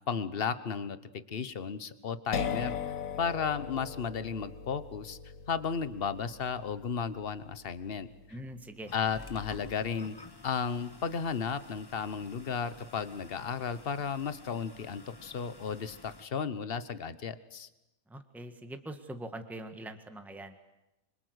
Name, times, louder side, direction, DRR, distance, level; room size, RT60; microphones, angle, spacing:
voice 1, 0.1-2.8 3.2-5.2 5.5-8.4 8.9-10.1 10.4-17.7, left 6 dB, 45° left, 13 dB, 1.3 m, -34 dB
sound 1, 2.3-9.9, left 7 dB, 70° left, 1.7 m, -40 dB
voice 2, 8.3-8.9 18.1-20.5, right 1 dB, ahead, 7 dB, 1.6 m, -43 dB
sound 2, 8.9-16.2, left 2 dB, 20° left, 1.1 m, -51 dB
26.5 x 25.0 x 8.1 m, 0.92 s
omnidirectional pair, 1.5 m